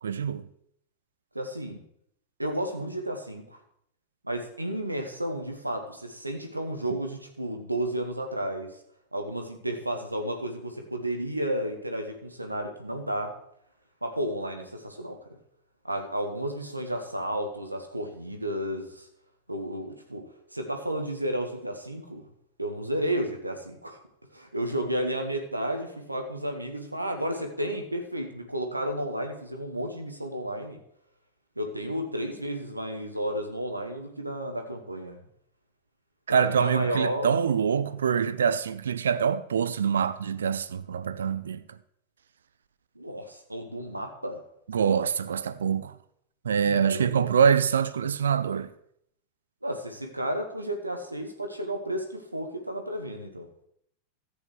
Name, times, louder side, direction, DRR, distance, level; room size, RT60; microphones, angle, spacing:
voice 1, 0.0-0.4 36.3-41.6 44.7-45.9 46.4-48.7, right 7 dB, 65° right, 0.5 m, -25 dB
voice 2, 1.3-1.8 2.4-3.6 4.2-8.7 9.1-13.3 14.0-15.2 15.8-19.1 19.5-20.2 20.5-22.2 22.6-24.0 24.3-30.8 31.6-35.2 36.3-37.3 42.9-44.4 46.6-47.3 49.6-53.5, right 1 dB, 85° right, 1.1 m, -32 dB
14.0 x 8.3 x 3.2 m
figure-of-eight pair, 90°, 0 cm